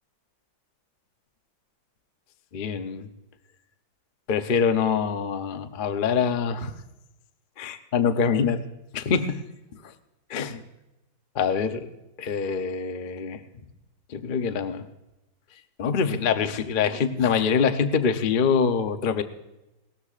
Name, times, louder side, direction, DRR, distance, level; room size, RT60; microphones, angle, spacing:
voice 1, 2.5-3.1 4.3-6.7 7.6-8.6 8.9-9.3 10.3-10.6 11.4-11.9 12.2-13.4 14.1-14.8 15.8-19.2, left 6 dB, 80° left, 8 dB, 0.4 m, -24 dB
19.0 x 13.5 x 2.5 m, 0.96 s
omnidirectional pair, 2.1 m